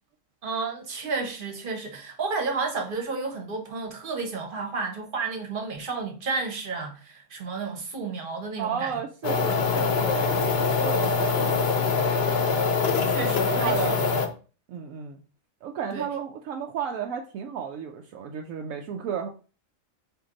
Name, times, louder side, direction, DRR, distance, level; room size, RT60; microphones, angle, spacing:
voice 1, 0.4-8.9 13.1-13.7 14.1-14.3 15.9-16.1, right 4 dB, 45° right, 1.1 m, -31 dB
voice 2, 8.6-12.2 13.0-14.0 14.7-15.2 15.6-19.3, right 7 dB, 90° right, 1.0 m, -34 dB
sound 1, 9.2-14.3, left 4 dB, 55° left, 0.9 m, -24 dB
4.5 x 2.8 x 3.7 m
omnidirectional pair, 1.4 m